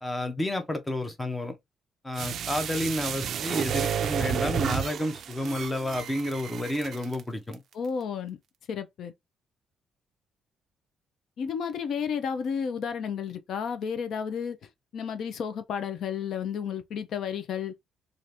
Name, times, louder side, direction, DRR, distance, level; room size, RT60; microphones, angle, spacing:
voice 1, 0.0-1.6 2.0-7.6, left 1 dB, 10° left, 0.6 m, -30 dB
sound 1, 2.1-7.2 7.5-7.6, right 8 dB, 55° right, 0.3 m, -31 dB
voice 2, 7.7-8.4 8.7-9.1 11.4-14.6 14.9-17.7, left 7 dB, 60° left, 0.5 m, -32 dB
2.7 x 2.5 x 3.3 m
cardioid pair, 150°, 0 cm